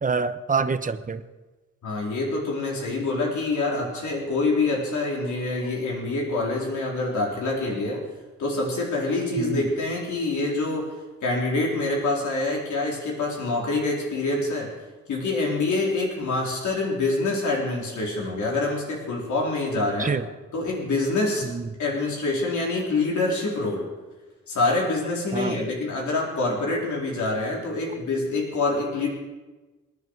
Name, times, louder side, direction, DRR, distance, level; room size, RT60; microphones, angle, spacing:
voice 1, 0.0-1.2 9.4-9.7 19.8-20.2 21.4-21.7 25.3-25.6, right 5 dB, 25° right, 11 dB, 0.9 m, -27 dB
voice 2, 1.8-8.0 8.4-10.9 11.2-14.7 15.1-20.1 20.5-21.5 21.8-23.9 24.5-29.1, left 2 dB, 75° left, -2 dB, 4.2 m, -26 dB
27.0 x 10.5 x 4.8 m, 1.2 s
cardioid pair, 115°, 30 cm